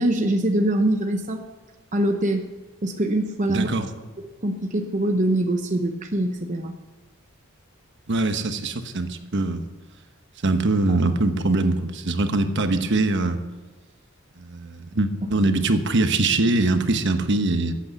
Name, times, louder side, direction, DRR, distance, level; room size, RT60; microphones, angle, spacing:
voice 1, 0.0-1.4 1.9-2.5 2.8-3.7 4.2-6.7 10.9-11.0, right 1 dB, 35° right, 4 dB, 0.8 m, -23 dB
voice 2, 3.5-3.9 8.1-9.6 10.4-13.4 14.4-17.7, right 2 dB, 55° right, 8 dB, 1.1 m, -22 dB
14.0 x 8.4 x 8.2 m, 1.2 s
head